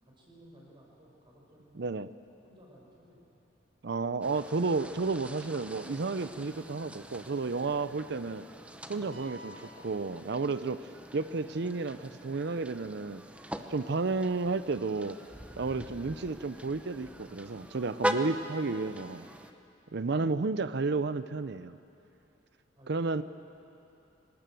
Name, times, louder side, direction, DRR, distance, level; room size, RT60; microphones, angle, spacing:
voice 1, 0.0-1.9 2.4-3.4 20.1-21.2 22.7-23.2, equal, 25° right, -3 dB, 6.0 m, -58 dB
voice 2, 1.8-2.1 3.8-8.5 8.9-13.2 13.7-15.2 15.6-19.3 19.9-21.8 22.9-23.2, right 3 dB, 65° right, 13 dB, 0.6 m, -32 dB
sound 1, 4.2-19.5, equal, 5° right, 0.9 m, -42 dB
sound 2, 9.1-11.0, equal, 90° right, 2.6 m, -52 dB
25.5 x 19.0 x 7.7 m, 2.8 s
head